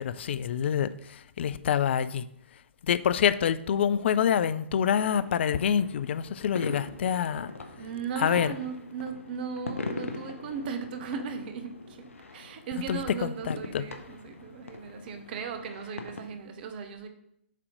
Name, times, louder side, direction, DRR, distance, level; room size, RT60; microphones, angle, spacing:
voice 1, 0.0-2.3 2.8-7.5 8.2-8.5 12.9-13.9, left 8 dB, 55° left, 15 dB, 0.4 m, -26 dB
sound 1, 4.9-16.2, left 3 dB, 80° left, 0.8 m, -41 dB
voice 2, 7.8-17.1, right 6 dB, 45° right, 7 dB, 0.7 m, -37 dB
7.5 x 2.9 x 5.0 m, 0.74 s
figure-of-eight pair, 125°, 7 cm